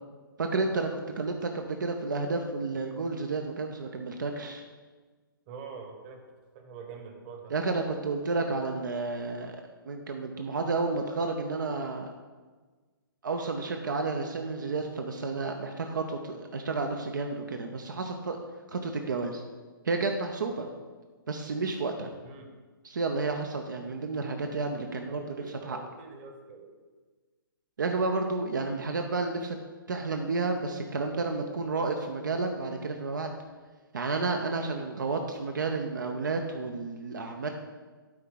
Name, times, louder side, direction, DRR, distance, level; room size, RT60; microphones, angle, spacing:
voice 1, 0.4-0.9 1.2-4.6 7.5-9.6 9.9-12.1 13.2-18.4 18.7-19.4 19.8-20.7 21.3-22.1 22.8-25.8 27.8-29.6 29.9-33.3 33.9-37.5, right 3 dB, 55° right, 4 dB, 0.8 m, -31 dB
voice 2, 5.5-6.2 6.5-7.5 22.2-22.5 25.0-26.7, right 5 dB, 30° right, 4 dB, 1.2 m, -45 dB
12.0 x 4.5 x 3.9 m, 1.4 s
figure-of-eight pair, 130°, 12 cm